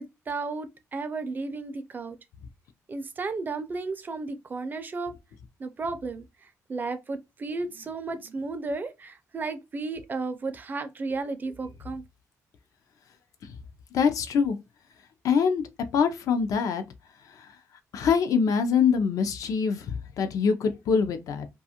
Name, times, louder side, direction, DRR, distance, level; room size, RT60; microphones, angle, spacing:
voice 1, 0.0-2.2 2.9-5.1 5.6-6.3 6.7-12.0, right 3 dB, 30° right, 0.4 m, -33 dB
voice 2, 13.9-14.6 15.2-15.6 15.9-16.8 17.4-17.5 17.9-21.5, left 6 dB, 70° left, 0.4 m, -24 dB
2.4 x 2.3 x 2.7 m
cardioid pair, 115°, 6 cm